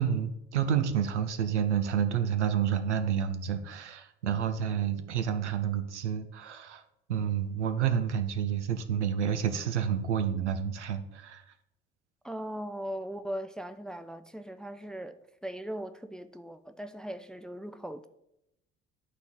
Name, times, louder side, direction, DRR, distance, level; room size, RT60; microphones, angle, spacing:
voice 1, 0.0-6.8 7.1-11.4, right 8 dB, 85° right, 0.7 m, -29 dB
voice 2, 12.2-18.1, right 1 dB, ahead, 0.4 m, -39 dB
11.5 x 4.2 x 3.8 m
figure-of-eight pair, 55°, 34 cm